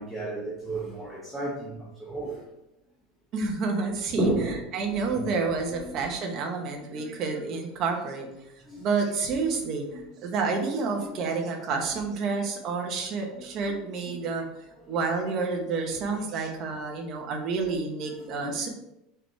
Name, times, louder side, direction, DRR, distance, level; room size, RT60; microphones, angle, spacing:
voice 1, 0.0-2.5 4.2-4.6 5.1-5.3 5.7-6.0 6.9-7.1 8.6-8.8 9.5-9.6 9.9-10.0 11.0-11.3 13.3-13.5 14.8-15.0 15.8-16.0 18.2-18.7, right 1 dB, 5° left, -6 dB, 1.0 m, -33 dB
voice 2, 3.3-4.3 4.7-8.3 8.8-14.5 14.9-18.7, right 4 dB, 30° right, 2 dB, 1.0 m, -29 dB
5.0 x 4.8 x 4.5 m, 0.86 s
supercardioid pair, 180°, 0 cm